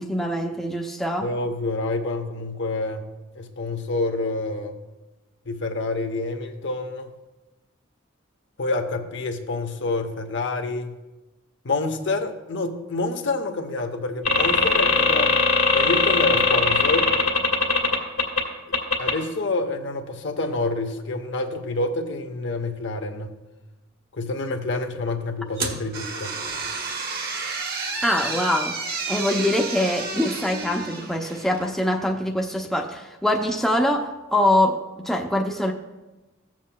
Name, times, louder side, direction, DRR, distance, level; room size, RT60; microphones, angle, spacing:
voice 1, 0.0-1.3 28.0-28.8 29.1-35.7, left 1 dB, ahead, 0 dB, 0.5 m, -24 dB
voice 2, 1.2-3.1 3.4-4.8 5.5-7.1 8.6-11.0 11.6-15.3 15.7-17.1 19.0-23.3 24.1-26.4, left 2 dB, 60° left, 5 dB, 0.8 m, -27 dB
sound 1, 14.2-18.4 18.7-19.1, left 3 dB, 80° left, 1.7 m, -20 dB
sound 2, 25.6-31.7, right 4 dB, 45° right, 1.0 m, -31 dB
15.0 x 7.3 x 2.2 m, 1.1 s
head